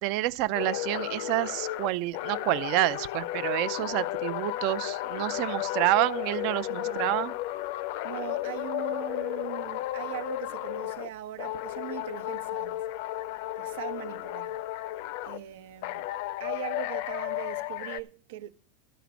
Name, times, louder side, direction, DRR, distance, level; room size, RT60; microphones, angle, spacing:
voice 1, 0.0-7.4, right 17 dB, 50° right, 0.5 m, -28 dB
sound 1, 0.5-11.1 11.4-15.4 15.8-18.0, left 15 dB, 60° left, 0.6 m, -33 dB
voice 2, 6.7-7.2 8.0-12.8 13.6-14.6 15.2-16.1 16.4-18.5, right 15 dB, 75° right, 1.0 m, -40 dB
13.0 x 5.1 x 8.2 m
supercardioid pair, 160°, 0 cm